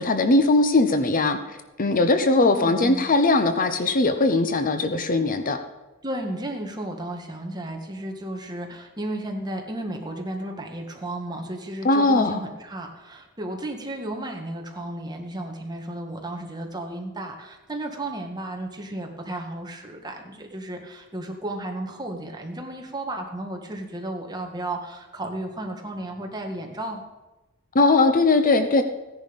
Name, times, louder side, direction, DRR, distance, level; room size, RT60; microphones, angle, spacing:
voice 1, 0.0-1.4 1.8-5.6 11.8-12.4 27.7-28.8, left 2 dB, 40° left, 8 dB, 0.8 m, -20 dB
voice 2, 2.4-3.1 6.0-27.0, right 1 dB, 20° right, 2 dB, 1.8 m, -33 dB
15.5 x 10.5 x 5.4 m, 1.1 s
head